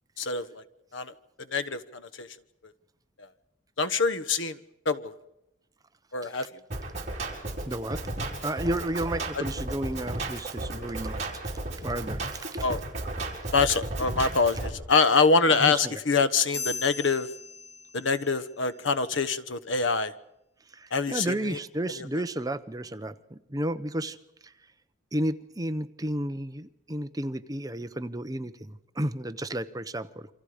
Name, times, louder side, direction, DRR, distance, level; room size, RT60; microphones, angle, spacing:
voice 1, 0.2-0.6 0.9-1.1 1.5-2.3 3.8-4.6 4.8-5.1 6.1-6.5 9.3-9.4 12.6-12.8 13.5-17.3 17.9-20.1 20.9-21.6 22.0-22.1, left 4 dB, 85° left, 13 dB, 1.2 m, -25 dB
Drum kit, 6.7-14.7, right 2 dB, 35° right, 4.5 m, -34 dB
voice 2, 7.7-8.1 8.4-11.5 11.8-12.6 15.6-16.0 20.7-24.2 24.4-24.5 25.1-30.3, right 1 dB, 20° right, 11 dB, 0.8 m, -32 dB
sound 1, 16.5-18.4, left 4 dB, 35° left, 1.4 m, -38 dB
28.0 x 26.0 x 5.1 m, 0.87 s
head